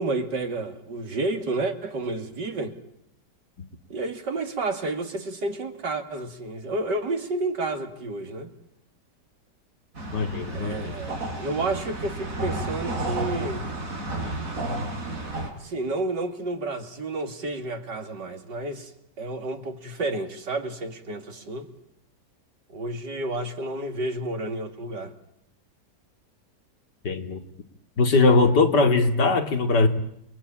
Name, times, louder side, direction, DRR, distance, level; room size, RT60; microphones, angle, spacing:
voice 1, 0.0-2.8 3.9-8.5 10.5-13.7 15.5-18.9 19.2-21.7 22.7-25.1, right 2 dB, 80° right, 3.0 m, -30 dB
sound 1, 9.9-15.5, right 2 dB, 50° right, 4.6 m, -32 dB
voice 2, 10.1-10.9 27.0-27.4 28.0-29.9, left 3 dB, 75° left, 2.9 m, -20 dB
29.0 x 21.5 x 8.9 m
omnidirectional pair, 1.8 m